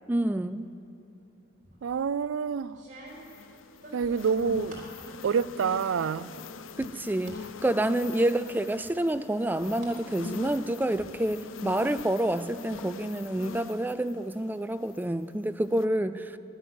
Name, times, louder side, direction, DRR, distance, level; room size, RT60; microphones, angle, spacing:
voice 1, 0.1-0.7 6.8-16.4, right 1 dB, 10° right, 11 dB, 0.3 m, -28 dB
sound 1, 1.6-2.1 2.7-5.0 5.4-6.0 6.3-7.4 7.9-8.0 8.8-10.0 10.3-11.0, right 1 dB, 40° right, 3.8 m, -49 dB
voice 2, 1.8-2.8 3.9-4.8 5.2-6.3 8.2-8.3, right 6 dB, 85° right, 18 dB, 0.4 m, -27 dB
sound 2, 3.1-15.2 15.6-15.9, left 4 dB, 90° left, 0.6 m, -43 dB
13.0 x 11.0 x 9.6 m, 2.7 s
head